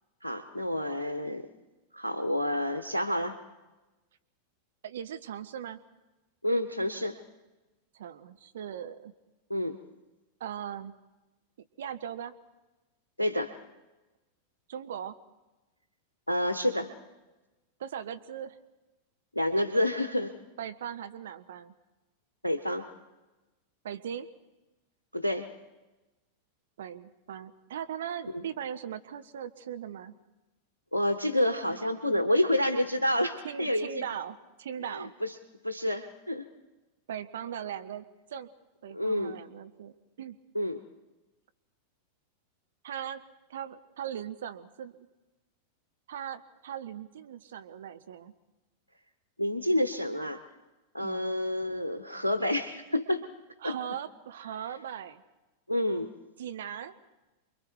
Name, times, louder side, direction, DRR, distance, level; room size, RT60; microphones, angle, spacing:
voice 1, 0.2-1.5 1.9-3.4 6.4-7.2 9.5-9.8 13.2-13.5 16.3-16.9 19.3-20.3 22.4-22.9 25.1-25.5 28.3-28.4 30.9-34.0 34.9-35.3 35.6-36.4 38.9-39.4 40.5-40.8 49.4-50.4 50.9-53.3 53.6-53.8 55.7-56.1, left 1 dB, 85° left, 8 dB, 1.0 m, -28 dB
voice 2, 4.8-5.8 7.9-9.1 10.4-10.9 11.8-12.3 14.7-15.1 17.8-18.6 20.6-21.7 23.8-24.3 26.8-30.1 33.4-35.1 37.1-38.5 38.8-40.4 42.8-43.2 43.5-45.1 46.1-48.3 51.0-51.3 53.6-55.2 56.4-56.9, right 9 dB, 60° right, 10 dB, 1.1 m, -39 dB
29.0 x 22.0 x 4.7 m, 1.1 s
figure-of-eight pair, 90°, 0 cm